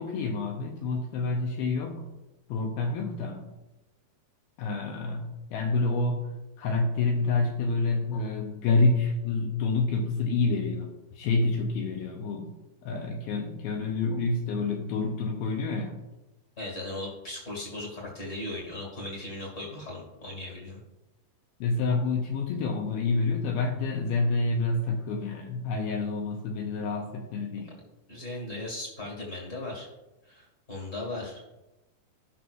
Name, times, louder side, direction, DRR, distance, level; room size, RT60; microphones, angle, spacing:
voice 1, 0.0-2.1 2.5-3.5 4.6-6.2 6.6-12.5 12.8-16.0 21.6-27.7, left 3 dB, 75° left, 3 dB, 2.3 m, -28 dB
voice 2, 16.6-20.8 28.1-29.9 30.2-31.5, left 2 dB, 25° left, -2 dB, 1.6 m, -37 dB
16.5 x 6.1 x 2.6 m, 1.0 s
omnidirectional pair, 5.0 m